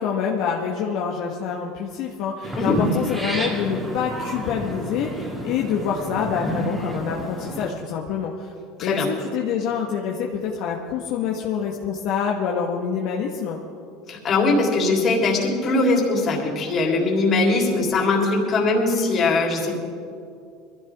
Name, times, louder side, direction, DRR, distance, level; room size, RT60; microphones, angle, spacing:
voice 1, 0.0-8.5 8.8-13.6, left 7 dB, 65° left, -1 dB, 1.4 m, -26 dB
sound 1, 2.4-7.7, right 1 dB, 15° right, 2.6 m, -30 dB
voice 2, 14.1-19.8, left 3 dB, 40° left, -1 dB, 3.5 m, -21 dB
21.5 x 15.0 x 3.6 m, 2.4 s
supercardioid pair, 115°, 0 cm